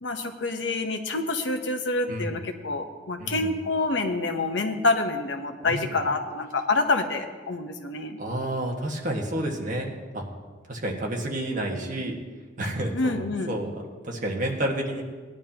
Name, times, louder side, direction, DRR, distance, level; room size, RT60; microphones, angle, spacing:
voice 1, 0.0-8.2 12.9-13.6, left 3 dB, 70° left, 6 dB, 1.1 m, -27 dB
voice 2, 3.2-3.5 5.6-6.0 8.2-10.2 10.7-12.2 12.6-15.0, right 1 dB, 45° right, 0 dB, 1.7 m, -30 dB
18.0 x 10.5 x 2.9 m, 1.4 s
head